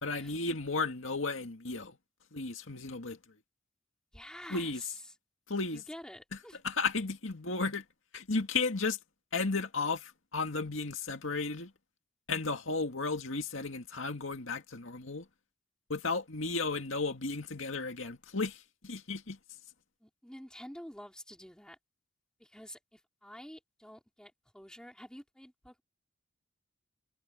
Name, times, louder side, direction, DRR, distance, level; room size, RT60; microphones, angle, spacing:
voice 1, 0.0-2.0 2.3-3.2 4.5-4.8 5.5-5.8 6.6-7.8 8.1-9.0 9.3-11.7 12.3-15.2 15.9-19.4, left 3 dB, 70° left, 2.2 m, -34 dB
voice 2, 4.1-5.0 5.7-6.6 20.0-21.8 22.4-25.8, equal, 5° left, 4.4 m, -49 dB
head